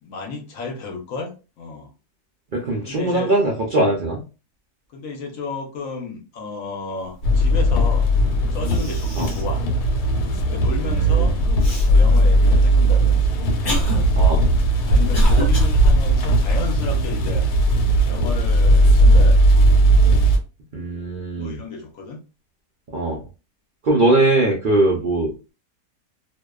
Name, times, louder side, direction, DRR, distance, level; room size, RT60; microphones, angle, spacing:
voice 1, 0.0-1.9 2.8-3.3 4.9-8.1 8.4-9.6 10.4-11.3 11.8-13.9 14.8-17.4 18.0-19.7 21.4-22.2 24.0-24.2 25.0-25.1, left 4 dB, 65° left, 2 dB, 1.0 m, -33 dB
voice 2, 2.5-4.2 9.2-9.3 10.9-11.3 14.2-14.4 20.7-21.6 22.9-23.2 23.8-25.5, right 2 dB, 90° right, -2 dB, 0.4 m, -21 dB
sound 1, 7.2-20.4, right 1 dB, 85° left, 1.2 m, -17 dB
Cough, 8.2-8.3 8.6-9.5 10.0-10.1 11.6-11.9 12.7-15.7, right 1 dB, 40° left, 0.9 m, -25 dB
2.7 x 2.1 x 2.2 m, 0.32 s
omnidirectional pair, 1.7 m